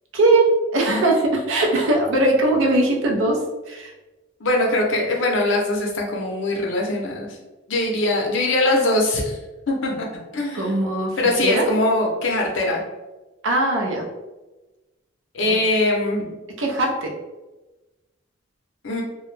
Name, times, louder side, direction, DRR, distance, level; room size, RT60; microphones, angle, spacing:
voice 1, 0.1-3.4 3.7-3.9 10.5-11.2 11.4-11.6 13.4-14.1 15.5-15.6 16.6-17.1, right 2 dB, 70° right, 0 dB, 0.5 m, -20 dB
voice 2, 4.4-7.4 7.7-9.4 9.7-10.1 10.3-10.7 11.2-12.8 15.3-16.4 18.8-19.0, left 2 dB, 70° left, -1 dB, 0.6 m, -22 dB
2.2 x 2.0 x 3.1 m, 1.1 s
head